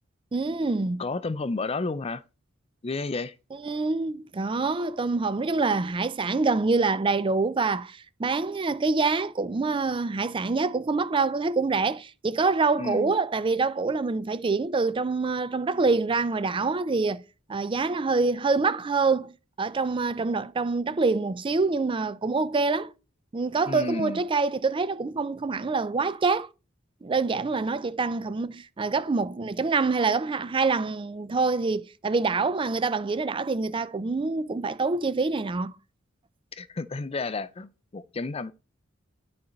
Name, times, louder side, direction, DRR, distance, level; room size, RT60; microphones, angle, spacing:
voice 1, 0.3-1.0 3.6-17.2 17.5-19.3 19.6-22.9 23.3-26.5 27.0-35.7, right 4 dB, 25° right, 0.4 m, -26 dB
voice 2, 1.0-2.2 2.8-3.3 12.8-13.1 23.7-24.2 36.5-38.5, left 3 dB, 30° left, 0.5 m, -31 dB
11.0 x 4.2 x 5.2 m
head